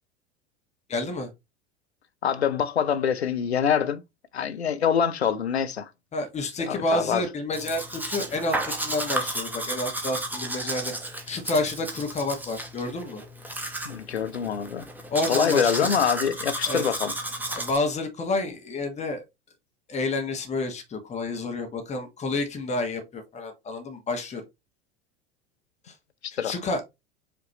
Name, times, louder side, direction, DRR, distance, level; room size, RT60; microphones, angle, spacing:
voice 1, 0.9-1.3 6.1-10.9 11.3-13.2 15.1-15.9 16.7-16.8 17.5-19.2 19.9-24.4 26.4-26.8, left 2 dB, 20° left, 1.2 m, -29 dB
voice 2, 2.2-4.0 4.3-5.9 6.6-7.3 13.8-14.9 15.3-17.1 26.2-26.5, left 7 dB, 85° left, 0.5 m, -25 dB
Domestic sounds home sounds, 7.5-17.8, right 1 dB, 5° right, 0.9 m, -33 dB
5.0 x 3.0 x 2.9 m
figure-of-eight pair, 80°, 31 cm